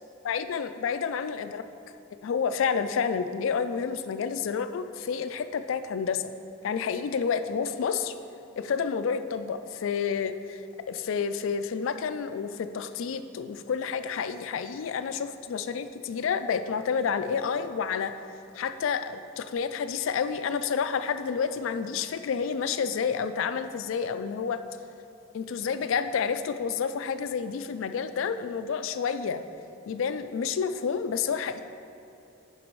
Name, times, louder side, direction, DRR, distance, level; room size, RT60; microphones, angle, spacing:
voice 1, 0.2-1.6 2.2-6.3 6.6-8.1 8.6-18.1 18.6-24.6 25.3-29.4 29.9-31.6, left 6 dB, 75° left, 10 dB, 0.3 m, -29 dB
10.0 x 5.3 x 3.1 m, 2.8 s
head